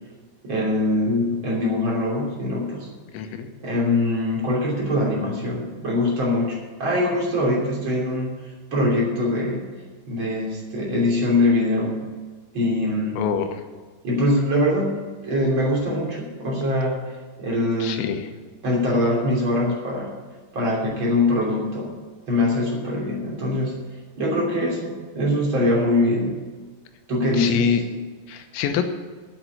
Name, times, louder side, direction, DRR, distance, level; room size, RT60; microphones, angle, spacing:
voice 1, 0.4-2.9 3.6-9.6 10.1-11.9 12.5-13.2 14.0-17.0 17.4-18.1 18.6-20.1 20.5-21.9 22.3-23.7 24.2-26.3 27.1-28.0, left 1 dB, 30° right, -4 dB, 2.8 m, -23 dB
voice 2, 3.1-3.5 13.2-13.6 17.8-18.3 27.3-27.8 28.3-28.8, left 8 dB, 85° left, 7 dB, 3.7 m, -24 dB
9.1 x 8.7 x 8.3 m, 1.4 s
omnidirectional pair, 6.0 m